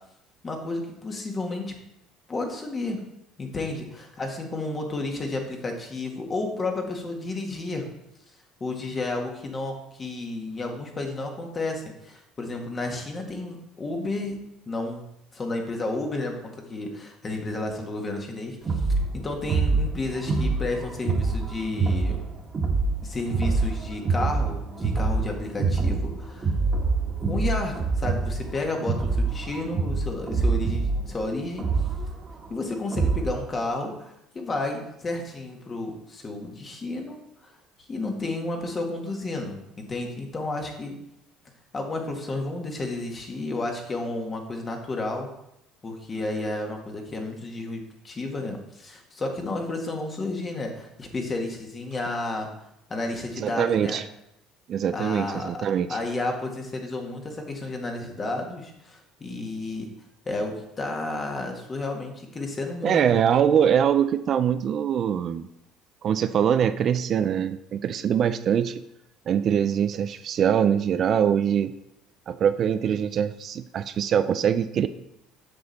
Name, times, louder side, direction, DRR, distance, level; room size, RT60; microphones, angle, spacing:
voice 1, 0.4-1.7 2.3-3.0 3.4-7.9 8.6-14.4 14.7-15.0 15.3-18.6 19.1-22.2 23.0-26.6 27.3-31.7 32.5-37.5 37.9-39.6 39.9-40.9 41.7-45.3 45.8-52.5 52.9-54.0 54.9-59.9 60.3-63.0, left 2 dB, 30° left, 2 dB, 1.7 m, -32 dB
sound 1, 18.6-33.4, right 3 dB, 30° right, 1.6 m, -26 dB
voice 2, 53.4-54.0 54.7-56.0 62.8-65.5 66.0-68.8 69.3-71.7 72.3-74.9, right 8 dB, 50° right, 11 dB, 0.4 m, -23 dB
7.7 x 6.2 x 4.1 m, 0.82 s
supercardioid pair, 95°, 0 cm